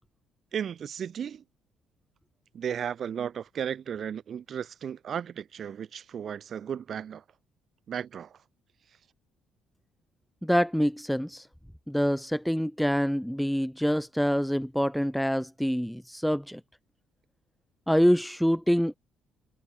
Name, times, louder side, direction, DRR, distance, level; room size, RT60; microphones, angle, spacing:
voice 1, 0.5-1.4 2.5-7.2 7.9-8.4, right 8 dB, 40° right, 1.6 m, -35 dB
voice 2, 10.4-11.4 11.9-16.6 17.9-18.9, equal, ahead, 0.3 m, -26 dB
cardioid pair, 160°, 0 cm